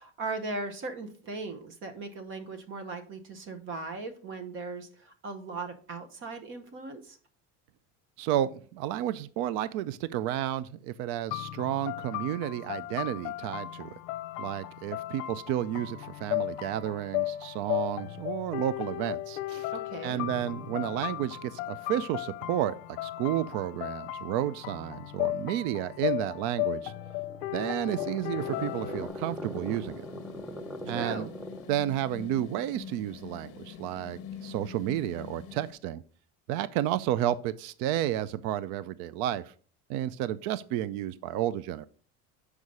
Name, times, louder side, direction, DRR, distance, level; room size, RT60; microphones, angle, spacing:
voice 1, 0.0-7.2 19.7-20.2 30.9-31.3, right 3 dB, 35° right, 1.0 m, -38 dB
voice 2, 8.2-13.9 14.4-19.7 20.0-26.9 27.5-30.0 30.9-31.3 31.7-36.0 36.5-39.5 39.9-41.9, right 12 dB, 65° right, 0.5 m, -31 dB
sound 1, 11.3-29.1, left 16 dB, 70° left, 0.7 m, -35 dB
sound 2, 26.8-31.8, equal, ahead, 0.4 m, -41 dB
sound 3, 28.4-35.7, left 8 dB, 40° left, 1.0 m, -45 dB
6.4 x 4.9 x 5.4 m
cardioid pair, 160°, 33 cm